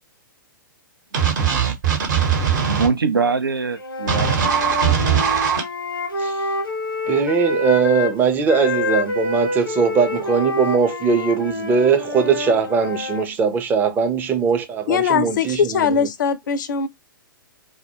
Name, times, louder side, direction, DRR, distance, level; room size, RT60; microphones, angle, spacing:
sound 1, 1.1-2.9 4.1-5.6, right 7 dB, 55° right, 0.9 m, -19 dB
voice 1, 2.7-4.8, right 4 dB, 80° right, 0.5 m, -23 dB
Wind instrument woodwind instrument, 3.8-8.1 8.5-13.3, left 2 dB, 85° left, 0.8 m, -27 dB
voice 2, 7.1-15.8, right 5 dB, 15° right, 0.4 m, -20 dB
voice 3, 14.9-16.9, left 7 dB, 60° left, 0.4 m, -20 dB
2.2 x 2.1 x 2.8 m
figure-of-eight pair, 110°, 12 cm